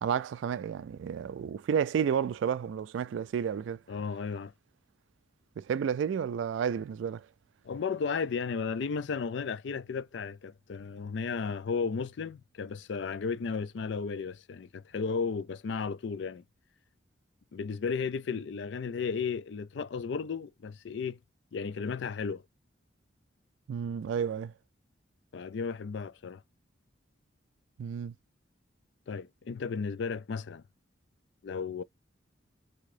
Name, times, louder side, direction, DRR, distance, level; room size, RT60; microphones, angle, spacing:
voice 1, 0.0-3.8 5.6-7.2 23.7-24.5 27.8-28.1, right 7 dB, 75° right, 0.3 m, -31 dB
voice 2, 3.9-4.5 7.6-16.4 17.5-21.2 21.5-22.4 25.3-26.4 29.1-30.6 31.4-31.8, left 5 dB, 65° left, 0.4 m, -34 dB
3.7 x 2.8 x 4.7 m
head